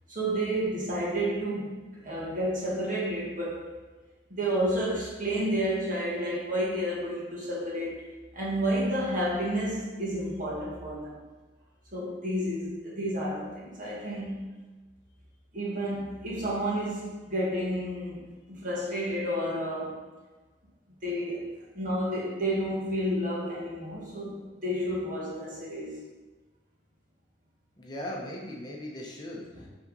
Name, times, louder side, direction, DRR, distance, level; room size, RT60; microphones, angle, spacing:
voice 1, 0.1-3.7 4.3-11.2 11.9-14.4 15.5-20.0 21.0-26.0 29.5-29.7, equal, 50° right, -5 dB, 1.8 m, -31 dB
voice 2, 27.8-29.7, left 1 dB, 25° left, -2 dB, 0.8 m, -38 dB
5.7 x 3.6 x 5.3 m, 1.3 s
head